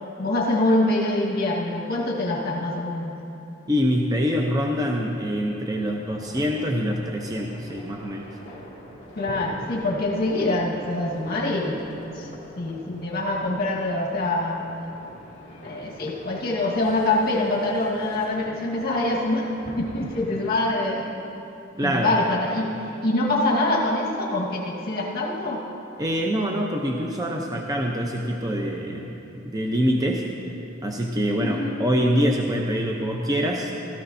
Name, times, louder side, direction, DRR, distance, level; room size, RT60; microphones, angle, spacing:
voice 1, 0.2-3.2 9.2-11.8 12.1-12.3 12.6-14.6 15.6-19.5 19.8-21.2 21.8-22.7 23.0-25.6 31.4-31.8, left 2 dB, 55° left, -4 dB, 1.5 m, -25 dB
voice 2, 3.7-8.3 21.8-22.1 26.0-29.1 29.4-30.2 30.8-33.7, equal, 20° right, 0 dB, 0.6 m, -25 dB
sound 1, 6.0-20.5, equal, 35° left, 2.3 m, -43 dB
16.5 x 13.5 x 2.7 m, 2.9 s
head